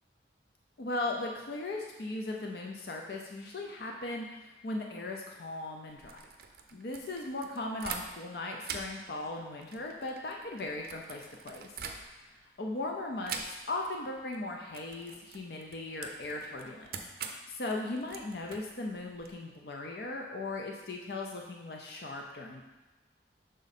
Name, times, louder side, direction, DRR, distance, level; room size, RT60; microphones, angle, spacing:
voice 1, 0.8-6.2 6.7-11.8 12.1-16.9 17.2-22.6, left 2 dB, 60° left, 1 dB, 0.5 m, -38 dB
sound 1, 5.9-8.3 8.6-12.4 13.2-13.9 14.2-14.4 14.7-19.3, right 6 dB, 55° right, 0.5 m, -44 dB
6.2 x 3.9 x 4.1 m, 1.1 s
head